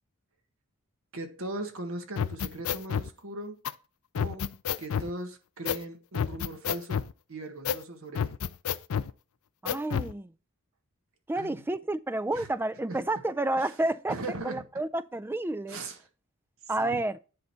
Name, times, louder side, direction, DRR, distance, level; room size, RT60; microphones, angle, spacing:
voice 1, 1.1-3.6 4.1-4.5 4.8-8.4 11.3-11.6 12.3-12.5 12.9-13.0 13.6-13.7 14.1-14.6 15.7-16.0 16.8-17.0, right 2 dB, 65° right, 1.6 m, -39 dB
sound 1, 2.2-3.1 3.6-3.7 4.2-5.1 5.7-5.8 6.1-7.1 7.6-7.8 8.2-9.1 9.7-10.1, left 7 dB, 65° left, 0.4 m, -29 dB
voice 2, 9.6-10.3 11.3-14.2 14.4-15.8 16.7-17.2, right 2 dB, 10° right, 0.3 m, -30 dB
10.0 x 4.0 x 5.6 m
head